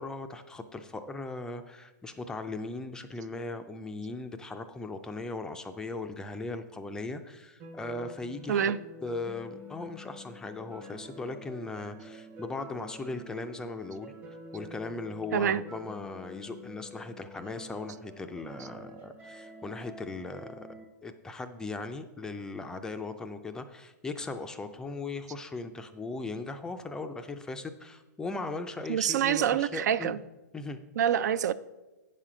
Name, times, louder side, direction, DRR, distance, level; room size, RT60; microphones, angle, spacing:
voice 1, 0.0-8.8 9.0-14.1 14.5-20.7 21.0-30.2 30.5-30.8, left 3 dB, 5° left, 0.3 m, -38 dB
sound 1, 7.6-20.8, equal, 20° right, 0.8 m, -48 dB
voice 2, 28.9-30.2 31.0-31.5, right 9 dB, 70° right, 0.4 m, -26 dB
9.0 x 5.8 x 4.9 m
hypercardioid pair, 150°, 10 cm